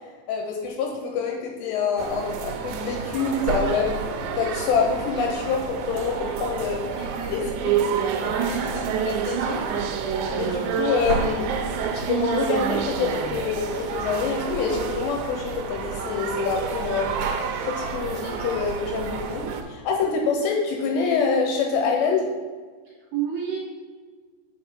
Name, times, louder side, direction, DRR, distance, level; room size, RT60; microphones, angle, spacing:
voice 1, 0.3-4.0 4.4-6.8 7.3-7.7 8.2-9.6 10.3-11.5 11.9-17.1 17.6-22.2, left 5 dB, 80° left, 1 dB, 2.7 m, -26 dB
sound 1, 2.0-19.6, right 6 dB, 85° right, 2.9 m, -28 dB
voice 2, 7.0-8.0 8.2-8.8 22.8-23.6, right 8 dB, 65° right, -6 dB, 2.5 m, -33 dB
8.0 x 4.8 x 3.6 m, 1.5 s
omnidirectional pair, 5.4 m